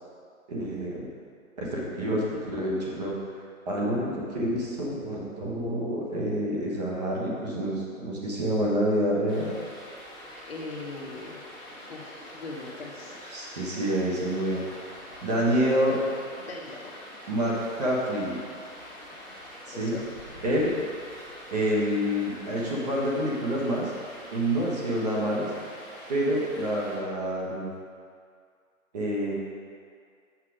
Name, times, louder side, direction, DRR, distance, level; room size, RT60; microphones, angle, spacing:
voice 1, 0.5-1.1 1.6-3.2 3.7-9.5 13.3-14.6 15.2-16.0 17.3-18.4 19.7-19.9 20.4-20.7 21.5-23.9 24.3-25.5 26.1-27.7 28.9-29.3, equal, 30° right, -4 dB, 1.2 m, -27 dB
Stream, 9.3-27.0, left 1 dB, ahead, 1.9 m, -45 dB
voice 2, 10.4-11.4 11.9-13.6 16.4-16.8 19.7-20.0, left 3 dB, 45° left, -1 dB, 1.0 m, -40 dB
7.2 x 5.5 x 4.9 m, 2.2 s
hypercardioid pair, 165°, 43 cm